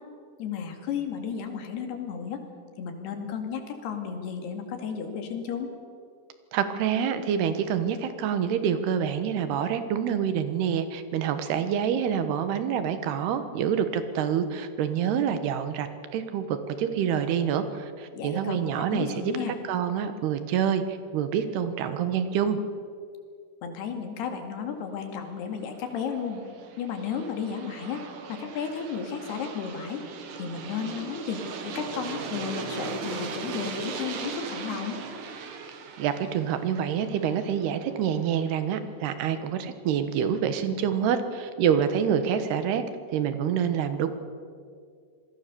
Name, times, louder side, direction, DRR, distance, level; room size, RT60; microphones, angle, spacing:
voice 1, 0.4-2.4 2.8-5.7 18.1-18.6 18.9-19.5 23.6-26.4 26.8-28.0 28.3-30.0 30.4-35.0, left 7 dB, 80° left, 5 dB, 4.3 m, -33 dB
voice 2, 6.5-22.6 36.0-42.8 43.1-44.1, right 8 dB, 80° right, 10 dB, 3.4 m, -27 dB
Aircraft, 25.7-38.6, right 5 dB, 60° right, 3.1 m, -38 dB
27.0 x 20.5 x 6.9 m, 2.2 s
omnidirectional pair, 4.6 m